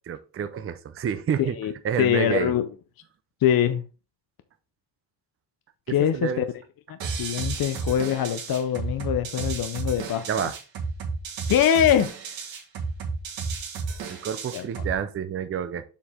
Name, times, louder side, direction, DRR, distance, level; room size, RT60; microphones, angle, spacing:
voice 1, 0.1-1.6 1.8-2.5 5.9-6.5 10.3-10.6 14.1-15.8, right 8 dB, 30° right, 0.5 m, -29 dB
voice 2, 1.4-1.7 2.0-2.7 3.4-3.8 5.9-6.4 6.9-10.3 11.5-12.1 14.5-14.6, left 10 dB, 55° left, 0.6 m, -23 dB
sound 1, 7.0-15.0, right 4 dB, 85° right, 1.8 m, -32 dB
7.0 x 4.6 x 3.6 m
wide cardioid pair, 155°, 43 cm